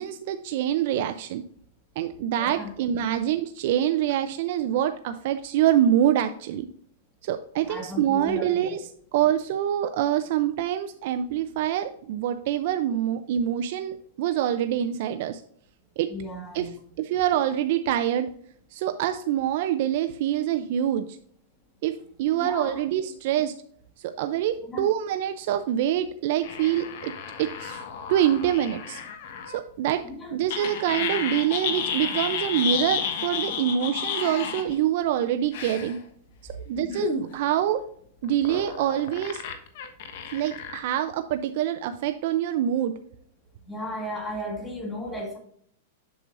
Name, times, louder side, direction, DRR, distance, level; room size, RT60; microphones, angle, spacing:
voice 1, 0.0-1.4 2.0-6.7 7.2-8.8 9.1-15.4 16.0-16.1 16.5-16.7 17.0-18.3 18.7-21.1 21.8-23.6 24.0-27.1 27.4-27.8 28.1-29.0 29.5-30.0 30.3-36.0 36.5-37.8 38.2-39.4 40.3-42.9, right 11 dB, 50° right, 9 dB, 0.4 m, -25 dB
voice 2, 2.3-2.7 7.7-8.7 16.1-16.7 22.4-22.8 24.6-24.9 30.0-30.3 36.7-37.0 43.6-45.4, left 1 dB, 10° left, 1 dB, 1.7 m, -35 dB
sound 1, 26.4-29.6 30.5-34.7 35.5-35.9 36.9-37.3 38.2-40.8, left 8 dB, 55° left, 1.1 m, -32 dB
7.7 x 6.1 x 2.5 m, 0.62 s
supercardioid pair, 155°, 0 cm